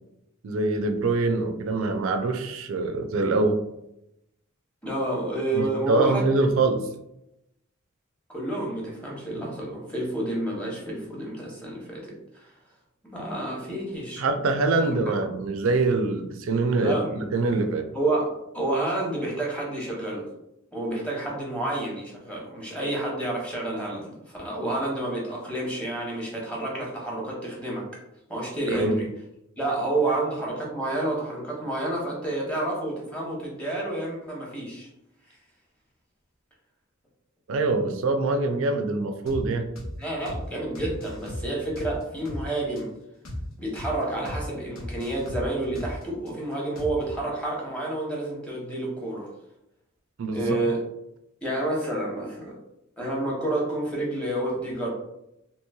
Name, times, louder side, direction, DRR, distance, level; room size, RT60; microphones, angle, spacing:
voice 1, 0.4-3.6 5.5-6.8 14.2-17.9 28.7-29.0 37.5-39.6 50.2-50.6, right 3 dB, 65° right, 6 dB, 0.4 m, -24 dB
voice 2, 4.8-6.5 8.3-12.5 13.1-14.2 14.8-15.0 16.7-17.2 17.9-20.2 20.7-27.9 28.3-29.1 29.6-34.9 40.0-42.9 43.6-49.3 50.3-50.8 51.4-52.5 53.0-54.9, right 2 dB, 5° left, -5 dB, 0.8 m, -29 dB
sound 1, 39.3-39.4 39.8-39.9 40.3-40.4 40.7-42.4 42.8-42.9 43.2-43.4 43.7-43.9 44.2-44.4 44.8-46.3 46.8-47.2, left 1 dB, 70° left, 0.9 m, -35 dB
3.0 x 2.9 x 2.3 m, 0.85 s
head